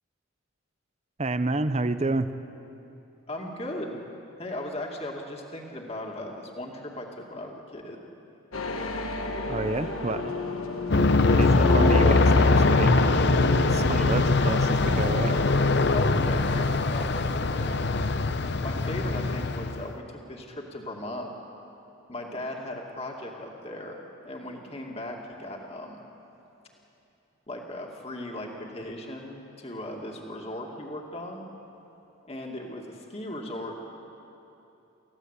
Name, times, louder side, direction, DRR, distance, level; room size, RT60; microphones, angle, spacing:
voice 1, 1.2-2.3 9.5-10.3 11.4-13.3 13.7-15.3, right 2 dB, 30° right, 11 dB, 0.7 m, -29 dB
voice 2, 3.3-4.0 4.4-8.1 11.2-11.8 15.9-17.9 18.6-21.3 22.1-24.0 24.2-26.0 27.5-31.5 32.3-33.7, left 1 dB, 30° left, 0 dB, 2.3 m, -37 dB
sound 1, 8.5-16.4, left 3 dB, 75° left, 1.5 m, -31 dB
Aircraft, 10.9-19.9, left 3 dB, 50° left, 0.7 m, -22 dB
29.0 x 15.5 x 8.3 m, 3.0 s
head